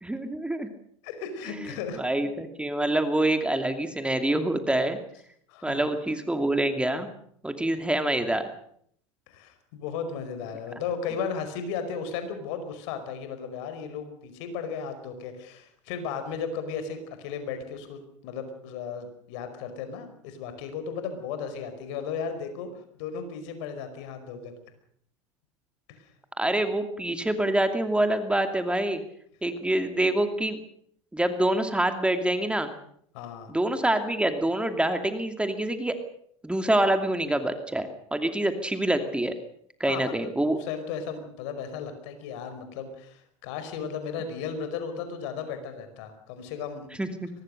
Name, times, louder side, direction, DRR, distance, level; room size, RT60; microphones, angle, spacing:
voice 1, 0.0-0.7 2.0-5.0 5.6-7.1 7.4-8.5 26.4-29.0 29.4-30.6 31.1-32.7 33.5-36.0 36.4-39.3 39.8-40.6 47.0-47.3, right 1 dB, 5° right, 7 dB, 2.6 m, -26 dB
voice 2, 1.0-2.0 5.5-5.9 9.3-22.7 23.0-24.5 25.9-26.1 33.1-33.5 39.8-46.9, left 6 dB, 65° left, 9 dB, 5.1 m, -35 dB
23.5 x 19.5 x 6.6 m, 0.66 s
hypercardioid pair, 85°, 16 cm